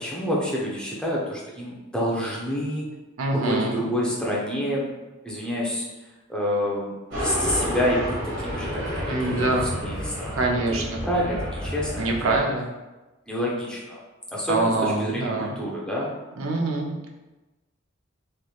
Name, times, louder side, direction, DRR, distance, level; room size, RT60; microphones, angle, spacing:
voice 1, 0.0-2.9 3.3-4.9 5.2-5.9 6.3-9.5 9.8-10.4 10.7-12.5 13.3-14.0 14.3-16.1, equal, 5° left, -5 dB, 0.6 m, -28 dB
voice 2, 3.2-3.8 9.1-9.7 10.3-11.0 12.0-12.7 14.5-15.6 16.4-17.1, right 2 dB, 80° right, 0 dB, 0.5 m, -25 dB
sound 1, 7.1-12.4, equal, 60° right, 1.5 m, -30 dB
3.3 x 3.0 x 2.3 m, 1.1 s
head